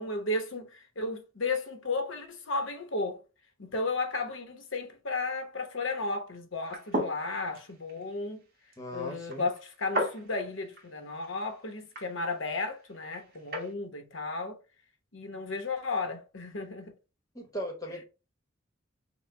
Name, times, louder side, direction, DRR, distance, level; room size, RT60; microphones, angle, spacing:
voice 1, 0.0-3.2 3.6-8.4 8.9-14.6 15.1-16.9, left 3 dB, 70° left, 1.0 m, -34 dB
sound 1, 6.6-13.7, equal, 45° right, 1.4 m, -38 dB
voice 2, 8.8-9.5 17.3-18.0, equal, 15° left, 1.1 m, -38 dB
6.1 x 2.3 x 3.3 m
head